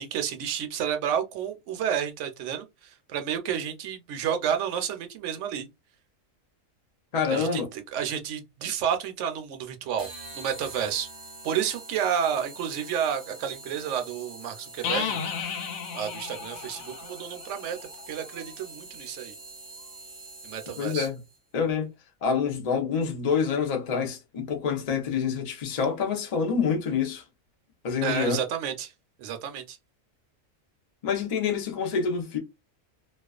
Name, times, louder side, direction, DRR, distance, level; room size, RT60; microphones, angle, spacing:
voice 1, 0.0-2.6 3.1-5.7 7.3-10.1 10.3-11.1 11.4-15.2 15.9-17.8 18.1-19.3 20.4-21.1 28.0-28.9 29.2-29.8, right 8 dB, 70° right, 0.8 m, -30 dB
voice 2, 7.1-7.7 20.8-21.2 21.5-21.9 22.2-27.2 27.8-28.4 31.0-32.4, left 6 dB, 45° left, 0.5 m, -27 dB
sound 1, 10.0-21.4, right 2 dB, 30° right, 0.4 m, -45 dB
sound 2, 14.8-18.5, left 7 dB, 85° left, 1.0 m, -34 dB
2.3 x 2.3 x 2.3 m
omnidirectional pair, 1.4 m